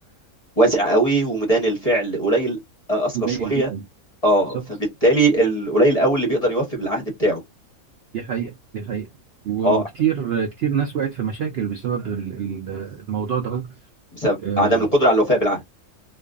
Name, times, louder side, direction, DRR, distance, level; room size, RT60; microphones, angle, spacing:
voice 1, 0.6-2.6 2.9-3.7 4.2-4.6 5.0-7.4 9.6-9.8 14.1-15.6, right 1 dB, 35° left, 0.7 m, -19 dB
voice 2, 3.1-3.8 4.5-4.6 8.1-9.1 9.4-13.7 14.4-14.9, right 8 dB, 65° right, 0.6 m, -26 dB
2.4 x 2.3 x 2.3 m
omnidirectional pair, 1.5 m